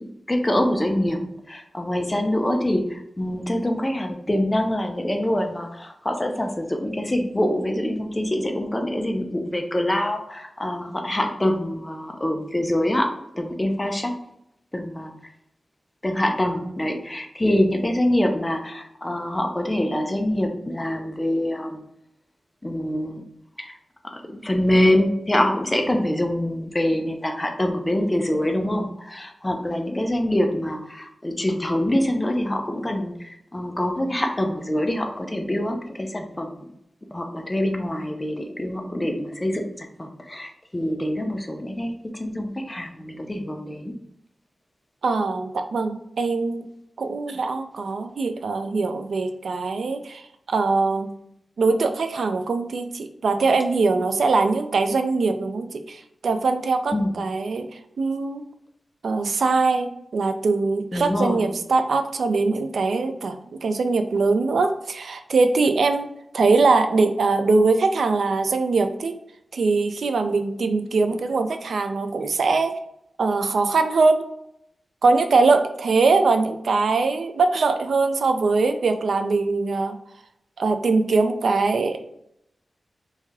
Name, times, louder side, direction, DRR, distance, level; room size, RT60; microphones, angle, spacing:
voice 1, 0.0-14.1 14.7-15.1 16.0-21.8 22.6-23.2 23.6-23.7 24.1-36.5 37.1-43.9 56.9-57.1 60.9-61.4, left 1 dB, 15° left, 4 dB, 0.4 m, -25 dB
voice 2, 45.0-46.7 47.0-51.1 51.6-58.4 59.0-66.1 66.3-69.1 69.5-72.7 73.2-74.3 75.0-80.0 80.6-82.0, right 3 dB, 80° right, 8 dB, 0.3 m, -22 dB
3.1 x 2.7 x 3.5 m, 0.77 s
wide cardioid pair, 145°, 0 cm